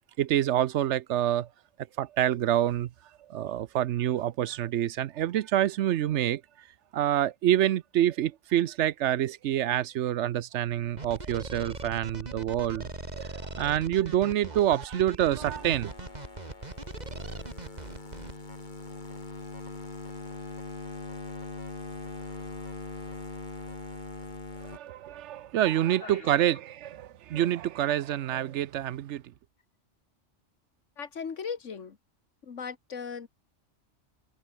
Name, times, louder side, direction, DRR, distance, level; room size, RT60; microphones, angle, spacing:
voice 1, 0.2-1.5 2.0-2.9 3.3-6.4 6.9-12.9 13.1-15.9 24.6-29.2, right 12 dB, 75° right, 0.9 m, -27 dB
sound 1, 11.0-18.3, right 2 dB, 35° right, 2.8 m, -40 dB
sound 2, 15.4-24.8, left 3 dB, 40° left, 2.6 m, -41 dB
voice 2, 26.0-26.5 31.0-32.0 32.4-33.3, left 6 dB, 85° left, 1.9 m, -38 dB
omnidirectional pair, 1.2 m